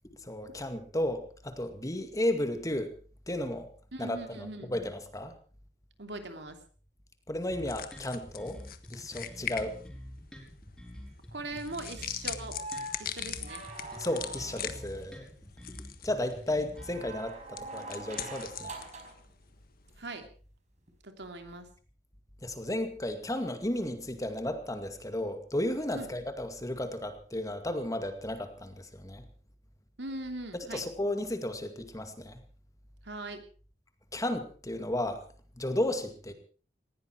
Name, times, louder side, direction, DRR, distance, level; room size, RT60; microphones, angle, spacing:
voice 1, 0.2-2.9 3.3-3.7 4.0-5.3 7.3-8.6 8.9-9.8 14.0-15.2 16.0-18.7 22.4-29.2 30.5-32.4 34.1-35.2 35.6-36.3, left 1 dB, 20° left, 8 dB, 2.2 m, -33 dB
voice 2, 3.9-4.8 6.0-6.6 11.3-12.6 13.0-13.6 20.0-20.3 21.0-21.7 25.9-26.1 30.0-30.8 33.0-33.4, right 2 dB, 70° right, 6 dB, 2.9 m, -40 dB
sound 1, 7.4-20.3, left 10 dB, 55° left, 1.5 m, -43 dB
sound 2, 7.5-17.1, equal, 5° left, 5.5 m, -47 dB
sound 3, 12.4-14.9 16.7-19.2 20.9-21.0, right 2 dB, 45° right, 4.9 m, -43 dB
19.5 x 16.0 x 4.6 m, 0.40 s
head